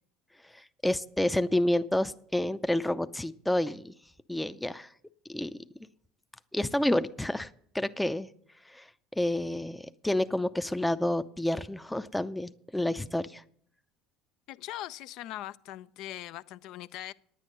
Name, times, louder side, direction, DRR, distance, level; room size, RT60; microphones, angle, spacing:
voice 1, 0.5-3.9 4.3-4.9 5.3-5.6 6.5-7.5 7.7-8.3 8.7-8.9 9.1-13.4, left 1 dB, 5° left, 0.5 m, -29 dB
voice 2, 14.5-17.1, left 14 dB, 60° left, 0.4 m, -41 dB
9.8 x 9.2 x 6.5 m
hypercardioid pair, 70°, 0 cm